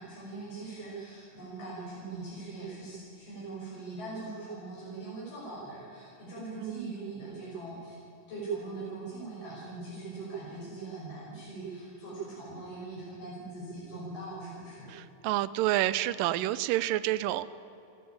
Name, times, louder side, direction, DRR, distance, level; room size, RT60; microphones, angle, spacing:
voice 1, 0.0-8.0 8.3-14.9, right 3 dB, 40° left, -7 dB, 7.4 m, -41 dB
voice 2, 6.6-6.9 14.9-17.5, right 15 dB, 80° right, 15 dB, 2.4 m, -29 dB
29.5 x 17.0 x 8.9 m, 2.8 s
omnidirectional pair, 4.1 m